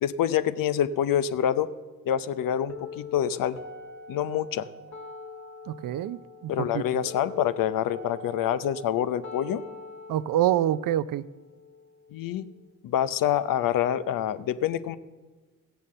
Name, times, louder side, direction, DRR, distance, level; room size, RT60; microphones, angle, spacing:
voice 1, 0.0-1.7 2.1-3.6 4.1-4.7 6.5-9.6 12.1-12.5 12.8-15.0, left 10 dB, 80° left, 14 dB, 0.7 m, -26 dB
sound 1, 2.7-12.7, left 4 dB, 55° left, 2.2 m, -44 dB
voice 2, 5.7-6.8 10.1-11.2, right 12 dB, 75° right, 17 dB, 0.5 m, -26 dB
15.0 x 7.0 x 7.7 m, 1.3 s
supercardioid pair, 50°, 33 cm